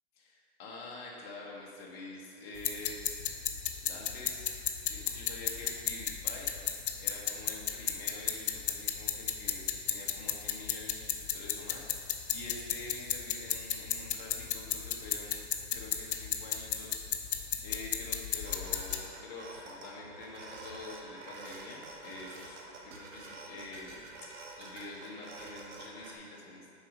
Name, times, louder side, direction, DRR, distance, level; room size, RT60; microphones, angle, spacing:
voice 1, 0.2-2.9 3.8-6.5 7.0-15.4 15.7-17.0 17.6-26.6, left 2 dB, 25° left, -3 dB, 1.2 m, -46 dB
sound 1, 2.6-19.0, left 9 dB, 50° left, 0.6 m, -35 dB
sound 2, 18.4-26.1, right 2 dB, 85° right, 1.4 m, -48 dB
7.0 x 4.6 x 5.1 m, 2.3 s
hypercardioid pair, 150°, 35 cm